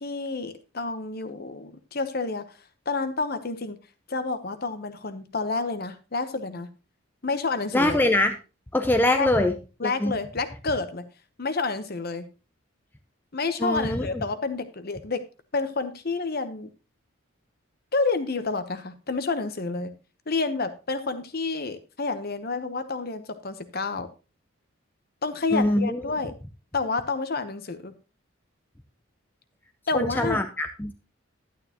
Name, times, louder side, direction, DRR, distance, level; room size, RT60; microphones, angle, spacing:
voice 1, 0.0-2.6 2.9-3.8 4.1-6.7 7.2-8.0 9.2-9.5 9.8-11.1 11.4-12.3 13.3-15.2 15.5-16.7 17.9-19.9 20.3-24.1 25.2-26.3 26.7-27.9 29.9-30.4, left 3 dB, 45° left, 10 dB, 1.0 m, -29 dB
voice 2, 7.7-8.3 8.7-9.5 9.8-10.1 13.6-14.2 25.5-26.0 29.9-30.9, left 1 dB, 10° left, 6 dB, 0.6 m, -23 dB
11.5 x 9.3 x 3.0 m, 0.31 s
head